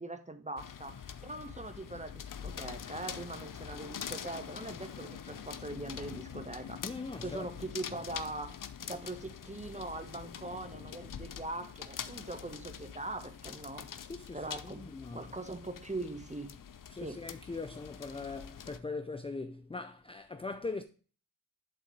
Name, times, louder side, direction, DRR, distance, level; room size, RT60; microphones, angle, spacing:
voice 1, 0.0-6.8 7.2-8.6 8.8-13.9 14.3-14.9 15.1-16.5 17.0-17.2, right 2 dB, 15° right, 1.2 m, -41 dB
sound 1, 0.6-18.8, left 8 dB, 55° left, 0.7 m, -45 dB
voice 2, 6.8-7.5 14.1-15.3 16.9-20.8, left 3 dB, 15° left, 0.5 m, -41 dB
8.0 x 3.8 x 4.6 m
cardioid pair, 40°, 39 cm